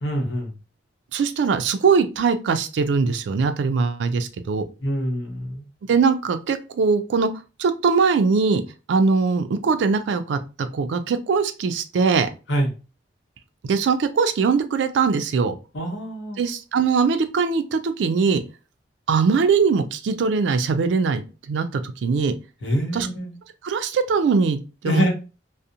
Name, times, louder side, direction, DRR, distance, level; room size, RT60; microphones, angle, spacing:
voice 1, 0.0-0.6 4.8-5.6 12.5-12.7 15.7-16.4 22.6-23.3 24.8-25.1, equal, 80° left, 1 dB, 0.8 m, -25 dB
voice 2, 1.1-4.6 5.9-7.3 7.6-8.6 8.9-12.3 13.6-15.5 16.4-18.4 19.1-22.3 22.9-23.1 23.6-25.1, right 5 dB, 80° right, 10 dB, 0.3 m, -21 dB
2.7 x 2.1 x 2.4 m, 0.31 s
head